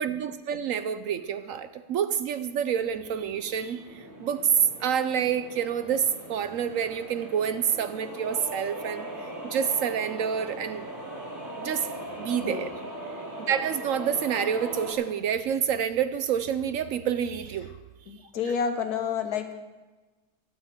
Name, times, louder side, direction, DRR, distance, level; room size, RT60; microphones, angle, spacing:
voice 1, 0.0-4.5 4.8-10.9 11.6-11.9 12.2-12.7 13.5-17.7, right 8 dB, 65° right, 12 dB, 0.9 m, -28 dB
sound 1, 2.5-14.9, right 1 dB, 40° right, 4.1 m, -39 dB
voice 2, 18.1-19.5, left 6 dB, 75° left, 7 dB, 1.6 m, -29 dB
13.0 x 8.0 x 7.6 m, 1.2 s
omnidirectional pair, 1.6 m